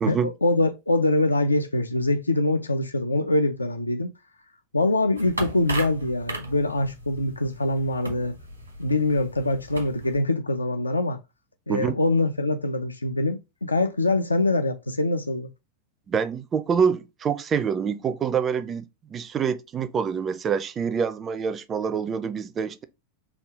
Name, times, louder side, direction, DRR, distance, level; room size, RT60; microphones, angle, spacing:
voice 1, 0.1-4.1 4.7-8.4 8.8-11.2 11.7-15.5, left 2 dB, 80° left, 0.3 m, -24 dB
sound 1, 5.2-10.2, right 1 dB, 85° right, 1.2 m, -37 dB
voice 2, 16.1-18.8 19.1-22.8, right 6 dB, 25° right, 0.4 m, -26 dB
3.5 x 2.3 x 4.4 m
figure-of-eight pair, 90°, 0 cm